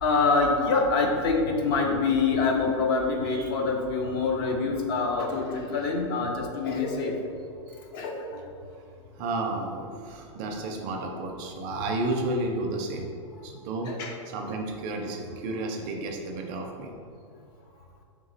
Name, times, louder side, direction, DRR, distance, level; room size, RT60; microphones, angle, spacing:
voice 1, 0.0-7.1 7.9-8.1 13.8-14.1, left 4 dB, 50° left, 2 dB, 0.6 m, -25 dB
voice 2, 9.2-13.1 13.4-14.0 14.3-16.9, right 2 dB, 35° right, 2 dB, 0.4 m, -32 dB
3.5 x 2.9 x 3.9 m, 2.4 s
supercardioid pair, 155°, 16 cm